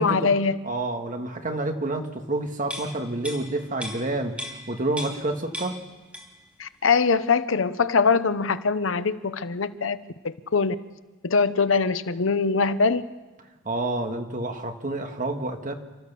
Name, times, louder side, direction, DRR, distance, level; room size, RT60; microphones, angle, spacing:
voice 1, 0.0-0.6 6.6-10.0 10.2-10.8 11.2-13.0, left 4 dB, 75° left, 13 dB, 0.8 m, -22 dB
voice 2, 0.6-4.4 4.7-5.8 13.6-15.7, right 2 dB, 40° right, 5 dB, 1.7 m, -28 dB
sound 1, 2.7-5.3 5.5-6.5 6.8-7.0, equal, 5° right, 2.8 m, -37 dB
29.0 x 13.5 x 6.9 m, 1.2 s
head